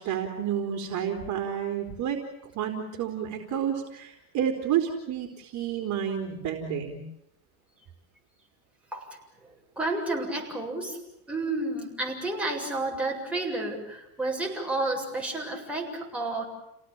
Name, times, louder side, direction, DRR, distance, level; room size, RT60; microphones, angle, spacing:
voice 1, 0.0-2.2 2.6-7.0, right 9 dB, 40° right, 4 dB, 3.9 m, -30 dB
voice 2, 9.8-11.0 11.3-16.4, right 2 dB, 5° right, -2 dB, 7.5 m, -31 dB
30.0 x 18.0 x 8.9 m, 0.84 s
supercardioid pair, 145°, 43 cm